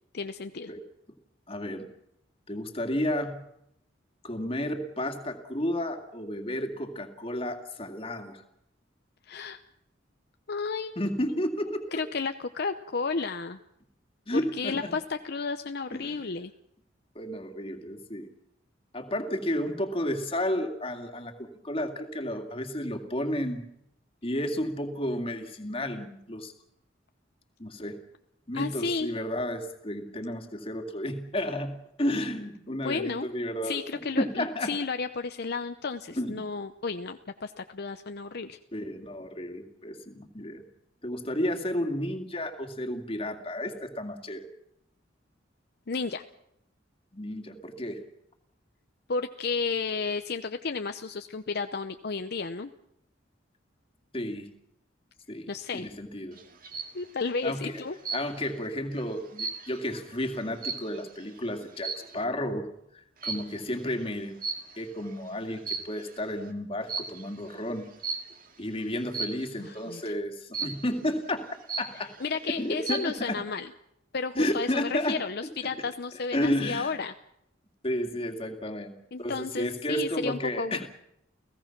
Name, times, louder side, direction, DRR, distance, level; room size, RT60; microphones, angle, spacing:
voice 1, 0.1-0.7 9.3-9.6 10.5-11.0 11.9-13.6 14.3-16.5 28.5-29.1 32.8-33.3 33.6-38.6 45.9-46.2 49.1-52.7 55.5-55.9 56.9-58.0 69.6-70.0 72.2-73.7 74.1-77.1 79.1-80.9, left 4 dB, 60° left, 8 dB, 0.7 m, -32 dB
voice 2, 1.5-1.9 2.5-3.5 4.2-8.4 11.0-11.9 14.3-14.9 15.9-16.2 17.2-18.3 18.9-23.6 24.2-26.5 27.6-28.0 28.5-33.8 34.2-34.7 36.1-36.4 38.7-40.6 41.0-44.5 47.1-48.0 54.1-54.5 55.3-56.4 57.4-57.8 58.1-64.4 64.8-67.9 68.6-71.5 71.8-72.1 72.5-73.4 74.3-75.2 76.3-76.9 77.8-78.9 79.2-80.9, left 1 dB, 30° left, 5 dB, 2.4 m, -32 dB
night cricket sound, 56.4-57.0 58.0-58.6 59.0-61.2 61.8-62.2 63.2-63.6 64.4-65.0 65.5-66.2 66.9-67.3 68.0-68.4 69.1-69.6 70.5-71.0 71.4-71.5 71.7-72.3 72.7-73.2, right 5 dB, 50° right, 2.1 m, -35 dB
30.0 x 16.5 x 6.0 m, 0.77 s
head